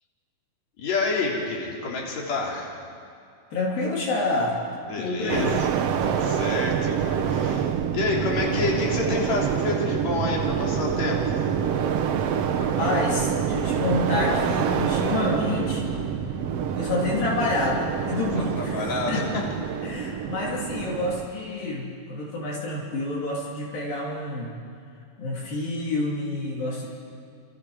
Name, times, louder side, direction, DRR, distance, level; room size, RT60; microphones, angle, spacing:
voice 1, 0.8-2.8 4.9-5.7 6.0-7.0 7.2-7.7 7.9-11.3 18.4-19.2, left 3 dB, 50° left, -2 dB, 4.6 m, -28 dB
voice 2, 3.5-5.6 8.5-9.1 12.5-16.0 16.7-19.3 19.8-24.5 25.2-26.9, left 2 dB, 70° left, -3 dB, 4.7 m, -28 dB
sound 1, 5.3-21.3, right 8 dB, 75° right, 1.4 m, -26 dB
29.5 x 28.0 x 5.0 m, 2.4 s
omnidirectional pair, 4.2 m